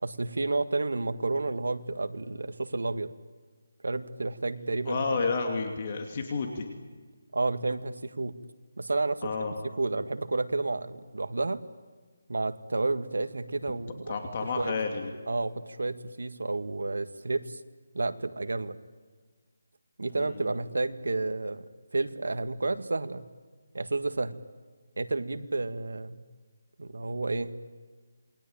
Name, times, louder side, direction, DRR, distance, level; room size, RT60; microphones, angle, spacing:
voice 1, 0.0-3.1 3.8-5.3 7.3-8.3 8.8-9.3 9.8-11.6 12.3-14.1 14.6-14.7 15.3-17.6 17.9-18.8 20.0-21.7 21.9-23.2 23.7-24.4 25.0-26.2 26.8-27.5, right 3 dB, 85° right, 10 dB, 1.8 m, -31 dB
voice 2, 4.9-6.7 9.2-9.5 14.1-15.1 20.2-20.4, left 4 dB, 30° left, 4 dB, 2.6 m, -31 dB
28.0 x 21.5 x 8.9 m, 1.5 s
hypercardioid pair, 170°, 0 cm